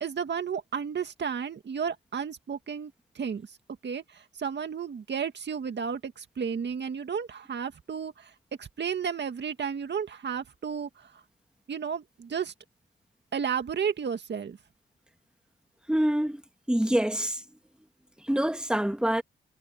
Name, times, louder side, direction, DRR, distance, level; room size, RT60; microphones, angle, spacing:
voice 1, 0.0-3.5 3.8-8.3 8.6-11.1 11.7-12.5 13.3-14.6, right 7 dB, 60° right, 2.0 m, -33 dB
voice 2, 15.9-16.4 16.7-17.4 18.3-19.2, right 1 dB, 5° right, 2.1 m, -25 dB
cardioid pair, 70°, 21 cm